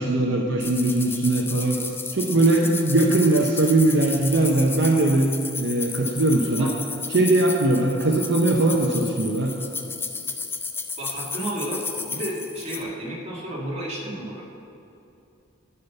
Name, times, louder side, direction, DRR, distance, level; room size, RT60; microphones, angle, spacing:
voice 1, 0.0-1.8 2.1-5.3 5.5-6.7 7.1-9.5, right 2 dB, 60° right, -1 dB, 0.8 m, -20 dB
sound 1, 0.6-12.8, left 4 dB, 10° left, 0.4 m, -33 dB
voice 2, 11.0-14.4, right 1 dB, 30° right, -4 dB, 2.1 m, -32 dB
10.0 x 5.7 x 6.9 m, 2.7 s
head